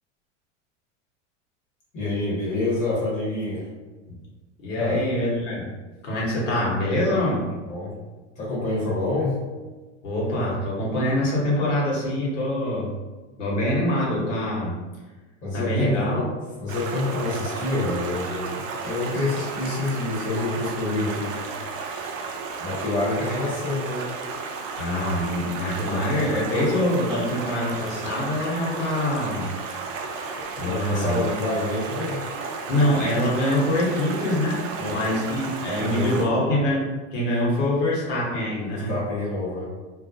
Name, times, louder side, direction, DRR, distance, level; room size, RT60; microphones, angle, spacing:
voice 1, 1.9-3.7 4.8-5.0 7.6-8.0 8.4-9.4 15.4-16.3 16.6-21.7 22.6-24.0 30.6-32.2 34.8-35.1 35.8-36.4 38.6-39.6, left 2 dB, 20° left, -7 dB, 1.0 m, -27 dB
voice 2, 4.6-5.7 6.0-7.4 10.0-12.9 13.4-14.8 15.5-16.3 24.8-29.5 30.6-31.2 32.7-34.6 34.9-36.8 37.1-38.9, left 1 dB, 75° left, -5 dB, 1.1 m, -24 dB
Stream, 16.7-36.3, right 4 dB, 90° right, 0.5 m, -33 dB
2.4 x 2.0 x 2.6 m, 1.2 s
hypercardioid pair, 115°, 38 cm